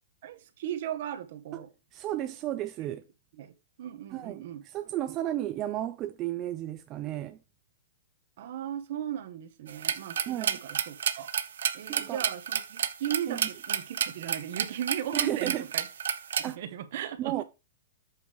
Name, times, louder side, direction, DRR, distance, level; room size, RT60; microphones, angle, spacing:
voice 1, 0.2-1.7 3.3-4.6 8.4-11.3 11.7-15.9 16.4-17.4, right 10 dB, 55° right, 1.0 m, -37 dB
voice 2, 1.9-3.0 4.1-7.4 10.3-10.6 11.9-12.2 13.3-13.5 15.1-15.6 16.4-16.6 17.2-17.4, right 13 dB, 25° right, 0.3 m, -33 dB
sound 1, 9.7-16.5, right 8 dB, 75° right, 0.7 m, -30 dB
8.0 x 3.3 x 5.2 m
hypercardioid pair, 155°, 0 cm